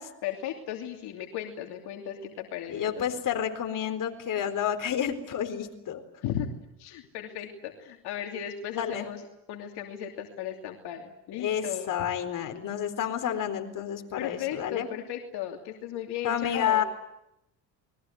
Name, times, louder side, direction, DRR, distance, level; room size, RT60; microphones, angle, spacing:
voice 1, 0.2-3.1 6.2-6.5 6.8-9.2 9.5-11.9 14.2-16.8, left 10 dB, 75° left, 2 dB, 2.9 m, -36 dB
voice 2, 2.7-6.0 8.7-9.1 11.4-14.9 16.2-16.8, left 9 dB, 55° left, 6 dB, 4.2 m, -30 dB
29.0 x 21.5 x 7.9 m, 0.83 s
supercardioid pair, 90°, 40 cm